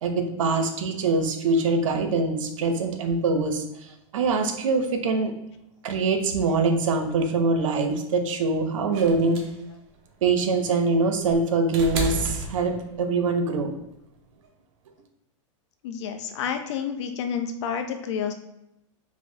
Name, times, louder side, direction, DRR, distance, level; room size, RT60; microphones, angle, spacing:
voice 1, 0.0-3.6 4.1-5.3 5.8-9.4 10.2-13.7, right 3 dB, 80° right, 5 dB, 0.7 m, -23 dB
sound 1, 8.9-13.2 14.4-14.5, right 3 dB, 40° right, 0.7 m, -33 dB
voice 2, 15.8-18.3, left 7 dB, 65° left, 6 dB, 0.5 m, -29 dB
4.7 x 2.0 x 2.7 m, 0.86 s
supercardioid pair, 145°, 16 cm